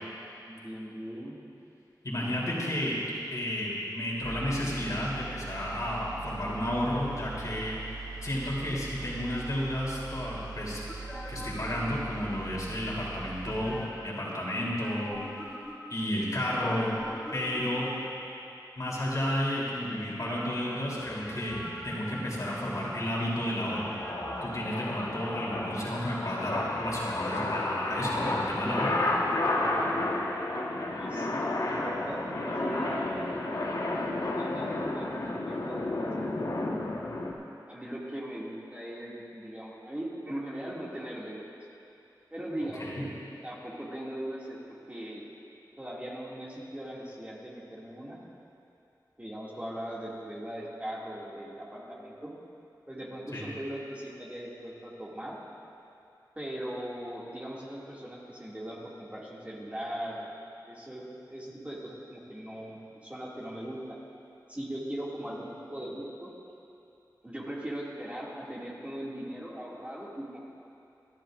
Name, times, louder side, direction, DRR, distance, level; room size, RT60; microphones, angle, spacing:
voice 1, 0.5-1.4 31.0-31.3 31.6-33.4 34.3-36.7 37.7-41.5 42.3-43.1 43.4-44.6 44.9-45.2 45.8-48.2 49.2-52.4 52.9-55.4 56.4-60.3 60.7-64.0 64.5-66.3 67.2-70.4, right 1 dB, 20° right, -6 dB, 2.5 m, -39 dB
voice 2, 2.0-3.0 3.3-7.8 8.2-10.8 11.3-15.2 15.9-16.9 17.3-17.9 18.8-24.0 24.4-28.9 42.8-43.0 53.3-53.4, left 1 dB, 50° left, -6 dB, 3.6 m, -32 dB
sound 1, 4.2-13.8, right 4 dB, 55° right, 3.6 m, -42 dB
sound 2, 10.9-12.7 13.4-14.2 14.6-16.0 16.5-18.2 21.0-23.1 23.7-24.6 25.0-26.2 26.6-29.0 29.2-29.3, equal, 5° left, 2.5 m, -44 dB
sound 3, 22.3-37.3, left 2 dB, 65° left, 1.5 m, -32 dB
27.0 x 11.5 x 2.6 m, 2.8 s
wide cardioid pair, 70°, 7 cm